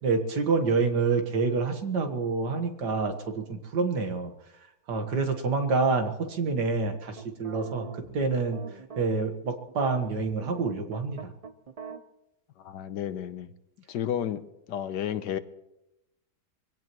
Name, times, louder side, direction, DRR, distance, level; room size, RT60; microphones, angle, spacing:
voice 1, 0.0-4.3 4.9-8.6 9.0-11.3, right 4 dB, 80° right, 6 dB, 2.1 m, -27 dB
sound 1, 7.2-9.3 9.7-12.0, right 5 dB, 55° right, 0.4 m, -42 dB
voice 2, 12.6-13.5 13.9-15.4, left 10 dB, 85° left, 12 dB, 1.5 m, -32 dB
23.5 x 16.5 x 3.1 m, 0.92 s
omnidirectional pair, 1.8 m